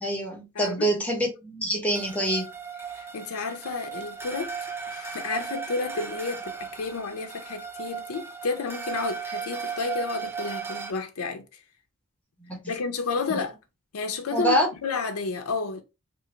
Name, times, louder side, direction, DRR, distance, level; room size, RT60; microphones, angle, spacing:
voice 1, 0.0-2.5 12.5-12.6 13.3-13.4 14.3-14.7, right 1 dB, 5° left, 0.9 m, -25 dB
voice 2, 0.5-0.9 2.9-4.5 4.9-11.5 12.7-13.6 13.9-15.8, left 4 dB, 80° left, 0.5 m, -31 dB
sound 1, 1.9-10.9, right 6 dB, 10° right, 0.3 m, -36 dB
3.1 x 2.3 x 2.9 m
head